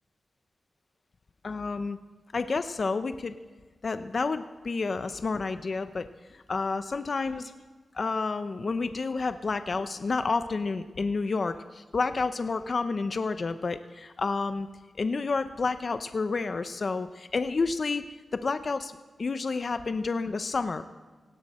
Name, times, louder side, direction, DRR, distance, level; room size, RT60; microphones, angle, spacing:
voice 1, 1.4-2.0 2.3-3.4 3.8-7.5 7.9-14.7 15.0-18.0 18.3-20.8, left 4 dB, 50° left, 10 dB, 0.7 m, -30 dB
18.0 x 16.5 x 4.3 m, 1.4 s
wide cardioid pair, 90°, 0 cm